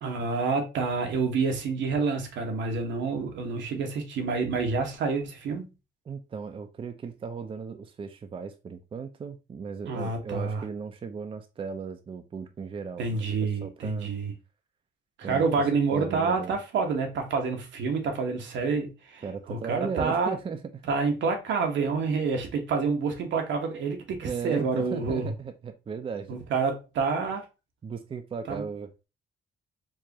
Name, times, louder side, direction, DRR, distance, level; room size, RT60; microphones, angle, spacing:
voice 1, 0.0-5.7 9.9-10.6 13.0-14.3 15.2-19.2 19.5-20.4 20.9-25.3 26.3-27.4 28.5-28.7, right 4 dB, 80° right, 1.1 m, -28 dB
voice 2, 6.1-13.2 13.6-14.1 15.2-15.4 15.9-16.6 19.2-20.6 24.2-26.4 27.8-29.1, right 6 dB, 30° right, 0.4 m, -36 dB
4.6 x 2.5 x 2.9 m
cardioid pair, 125°, 19 cm